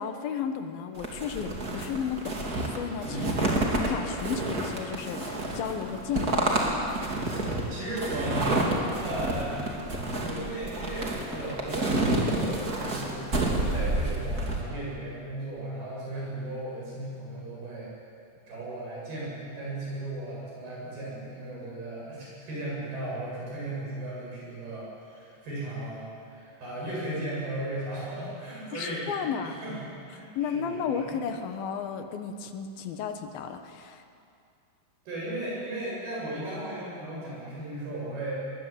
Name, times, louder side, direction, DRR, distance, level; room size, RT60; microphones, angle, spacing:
voice 1, 0.0-6.5 28.7-29.6 30.4-34.0, left 7 dB, 70° left, 7 dB, 2.9 m, -33 dB
sound 1, 1.0-14.6, right 2 dB, 25° right, 2.6 m, -29 dB
voice 2, 3.0-3.4 7.2-8.5 9.0-9.6 10.1-17.9 18.5-31.2 35.1-38.4, right 1 dB, 65° right, -5 dB, 9.5 m, -36 dB
21.5 x 20.5 x 9.1 m, 2.5 s
omnidirectional pair, 4.7 m